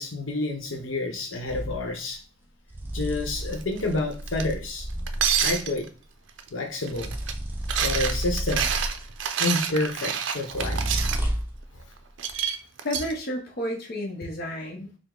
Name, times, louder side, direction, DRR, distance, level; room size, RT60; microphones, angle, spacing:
voice 1, 0.0-2.2 2.9-4.9 5.4-5.9 6.5-7.1 7.8-8.7 9.4-10.8, left 2 dB, 85° left, 3 dB, 0.8 m, -29 dB
sound 1, 1.5-1.8 2.7-5.7 6.9-9.2 10.5-11.6, right 1 dB, 10° right, 0.5 m, -31 dB
sound 2, 3.5-3.8 4.3-4.5 5.1-5.9 6.4-6.5 6.7-7.3 7.6-11.2 12.2-13.1, right 8 dB, 65° right, 0.4 m, -27 dB
voice 2, 12.8-15.0, equal, 55° left, 0 dB, 0.8 m, -31 dB
4.9 x 2.0 x 3.8 m, 0.37 s
head